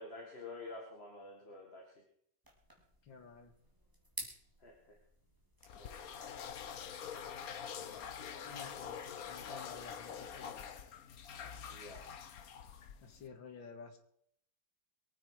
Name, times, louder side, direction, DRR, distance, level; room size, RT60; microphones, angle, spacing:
voice 1, 0.0-1.9 4.6-5.0 5.8-6.3 11.7-12.0, left 2 dB, 35° left, 1 dB, 2.2 m, -49 dB
sound 1, 2.4-7.5, right 1 dB, 10° right, 3.1 m, -52 dB
voice 2, 3.1-3.5 7.6-8.1 8.4-9.0 9.3-10.6 13.0-14.0, left 5 dB, 85° left, 6 dB, 2.5 m, -52 dB
sound 2, 5.6-13.3, left 7 dB, 55° left, 1.3 m, -46 dB
23.5 x 9.1 x 4.8 m, 0.69 s
omnidirectional pair, 2.0 m